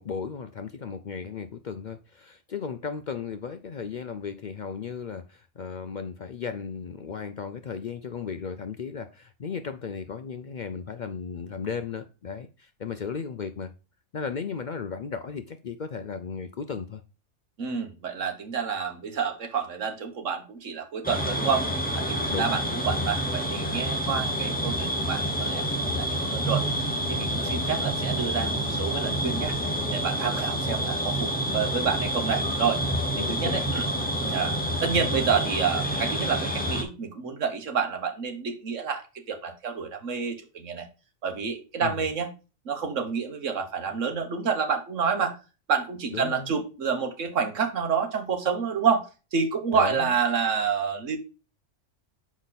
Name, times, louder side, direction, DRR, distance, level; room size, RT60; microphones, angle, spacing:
voice 1, 0.0-13.7 14.1-17.0 22.3-22.6 27.5-27.6 33.2-33.8 41.8-42.0 46.1-46.5 49.7-50.1, left 6 dB, 55° left, 0.5 m, -35 dB
voice 2, 17.6-29.5 29.9-32.8 33.2-33.8 34.2-34.5 34.8-40.9 41.2-42.3 42.6-45.4 45.7-49.1 49.3-51.2, right 6 dB, 75° right, 1.6 m, -29 dB
sound 1, 21.0-36.8, equal, 10° left, 1.0 m, -28 dB
6.1 x 5.1 x 4.0 m
omnidirectional pair, 1.3 m